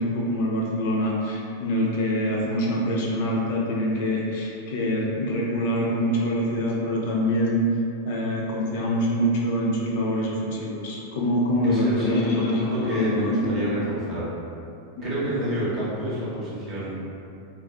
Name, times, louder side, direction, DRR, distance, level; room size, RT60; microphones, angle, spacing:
voice 1, 0.0-7.7 8.1-13.6 15.0-15.3, equal, 50° left, -4 dB, 0.4 m, -25 dB
voice 2, 11.6-14.3 15.0-17.0, equal, 30° right, -9 dB, 0.8 m, -28 dB
2.4 x 2.2 x 2.3 m, 2.6 s
figure-of-eight pair, 90°, 0 cm